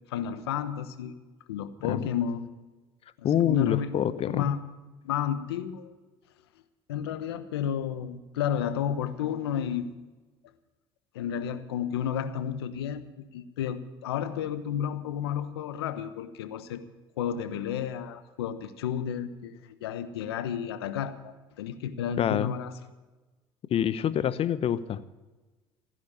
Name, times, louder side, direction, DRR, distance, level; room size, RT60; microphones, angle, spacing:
voice 1, 0.1-1.2 1.5-2.5 3.2-3.9 4.3-4.6 5.0-5.9 6.9-9.9 11.1-13.0 13.3-16.8 17.2-22.7, left 9 dB, 90° left, 12 dB, 1.1 m, -31 dB
voice 2, 3.2-4.5 22.2-22.5 23.7-25.0, left 9 dB, 50° left, 16 dB, 1.0 m, -26 dB
15.5 x 10.5 x 7.1 m, 1.2 s
hypercardioid pair, 70°, 13 cm